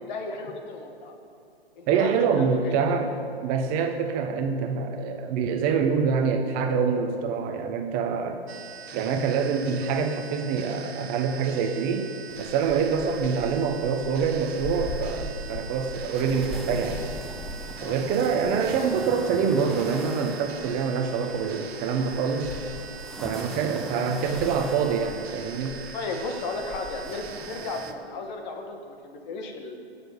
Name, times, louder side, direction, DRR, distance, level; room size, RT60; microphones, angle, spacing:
voice 1, 0.1-1.1 1.8-2.7 17.8-18.0 25.9-29.8, left 3 dB, 45° left, 3 dB, 2.1 m, -34 dB
voice 2, 1.9-3.1 3.4-8.4 8.9-12.1 12.4-17.1 17.8-22.5 23.2-25.8, right 6 dB, 30° right, 5 dB, 0.9 m, -25 dB
sound 1, 8.5-27.9, right 7 dB, 75° right, 1.1 m, -43 dB
sound 2, 12.3-27.9, left 1 dB, ahead, 0.8 m, -39 dB
17.0 x 7.0 x 7.1 m, 2.7 s
hypercardioid pair, 130°, 32 cm